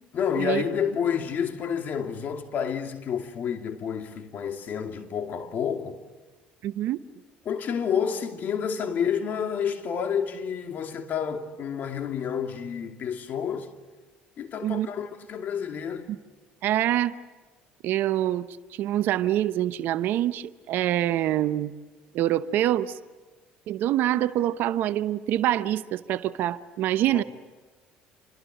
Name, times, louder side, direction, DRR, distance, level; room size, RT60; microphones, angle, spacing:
voice 1, 0.1-6.0 7.4-13.7 14.4-16.1 27.1-27.2, left 7 dB, 55° left, 2.6 m, -29 dB
voice 2, 6.6-7.0 14.6-14.9 16.1-16.2 16.6-17.1 17.8-21.7 22.1-23.0 23.7-27.2, right 13 dB, 65° right, 0.9 m, -25 dB
28.0 x 24.5 x 8.1 m
supercardioid pair, 75°, 4 cm